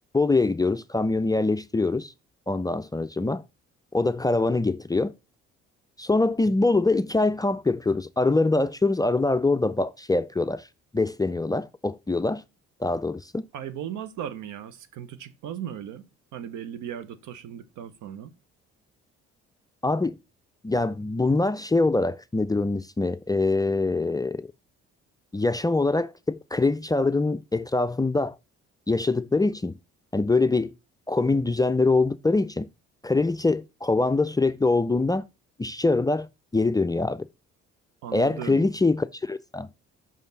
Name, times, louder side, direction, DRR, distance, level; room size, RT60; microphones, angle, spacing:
voice 1, 0.1-2.1 2.5-3.4 3.9-5.1 6.0-10.7 10.9-12.4 12.8-13.5 19.8-20.2 20.6-24.5 25.3-28.4 28.9-29.8 30.1-30.7 31.1-32.7 33.0-35.2 35.6-36.3 36.5-37.3 38.1-39.7, left 3 dB, 10° left, 0.4 m, -24 dB
voice 2, 13.5-16.1 16.3-18.3 38.0-38.7, right 9 dB, 75° right, 0.9 m, -37 dB
5.4 x 5.3 x 4.0 m
supercardioid pair, 60°, 31 cm